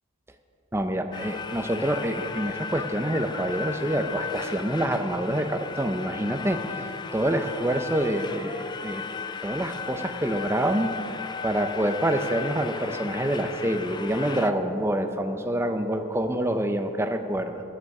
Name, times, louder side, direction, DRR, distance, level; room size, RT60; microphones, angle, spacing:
voice 1, 0.7-9.0 9.4-10.9 11.4-17.6, right 1 dB, 10° right, 6 dB, 0.7 m, -27 dB
sound 1, 1.1-14.5, left 5 dB, 20° left, 0.4 m, -36 dB
16.0 x 11.5 x 4.9 m, 3.0 s
head